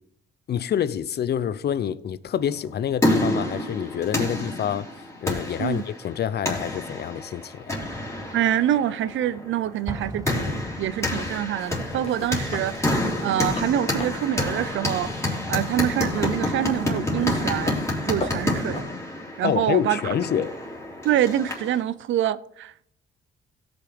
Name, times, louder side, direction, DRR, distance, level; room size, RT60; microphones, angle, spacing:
voice 1, 0.5-4.9 5.2-7.8 19.4-20.5, left 9 dB, 55° left, 0.6 m, -27 dB
sound 1, 2.6-21.8, left 1 dB, 15° left, 3.6 m, -28 dB
voice 2, 8.3-17.8 18.1-18.8 19.4-20.0 21.0-22.9, right 11 dB, 75° right, 0.6 m, -26 dB
Explosion, 9.9-11.6, right 2 dB, 15° right, 1.2 m, -38 dB
sound 2, 11.2-18.8, left 2 dB, 30° left, 2.6 m, -38 dB
16.5 x 6.1 x 5.0 m
cardioid pair, 90°, 20 cm